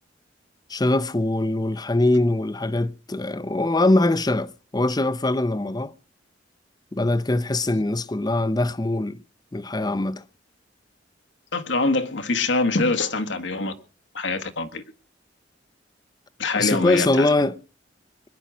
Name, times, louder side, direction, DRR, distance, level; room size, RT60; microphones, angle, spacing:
voice 1, 0.7-5.9 6.9-9.2 9.5-10.2 16.6-17.6, left 2 dB, 20° left, 0.7 m, -22 dB
voice 2, 11.5-13.7 14.1-14.8 16.4-17.3, left 3 dB, 80° left, 1.6 m, -24 dB
21.0 x 11.0 x 6.2 m
head